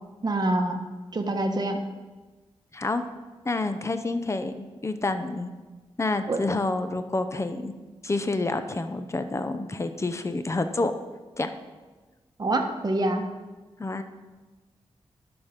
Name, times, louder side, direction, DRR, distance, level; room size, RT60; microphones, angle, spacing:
voice 1, 0.2-0.8 1.1-1.8 6.3-6.4 12.4-13.3, right 2 dB, 40° right, 4 dB, 1.2 m, -25 dB
voice 2, 2.7-3.0 3.4-5.5 6.0-7.7 8.0-10.9 11.4-11.5 13.8-14.0, left 2 dB, 25° left, 9 dB, 0.7 m, -28 dB
11.0 x 6.1 x 5.2 m, 1.2 s
cardioid pair, 75°, 11 cm